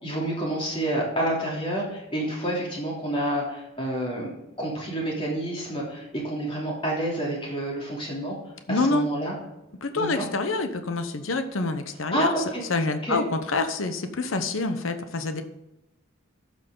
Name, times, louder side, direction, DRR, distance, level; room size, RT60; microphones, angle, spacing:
voice 1, 0.0-4.3 4.6-8.3 8.7-9.4 9.9-10.3 12.1-12.6 13.0-13.2, right 1 dB, 25° left, -3 dB, 3.0 m, -28 dB
voice 2, 8.7-9.1 9.8-12.3 12.7-15.4, left 3 dB, 85° left, 9 dB, 0.9 m, -27 dB
12.0 x 6.4 x 3.8 m, 0.93 s
head